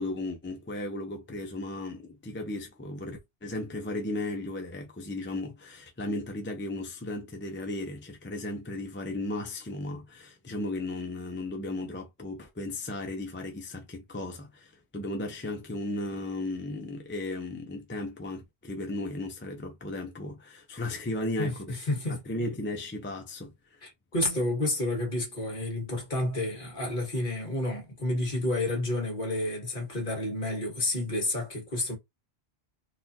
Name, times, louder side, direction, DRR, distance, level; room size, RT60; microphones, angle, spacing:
voice 1, 0.0-21.8 22.3-23.8, left 2 dB, 15° left, 0.5 m, -35 dB
voice 2, 21.4-22.2 23.8-32.0, left 1 dB, 50° left, 1.6 m, -30 dB
4.0 x 2.5 x 2.7 m
omnidirectional pair, 1.1 m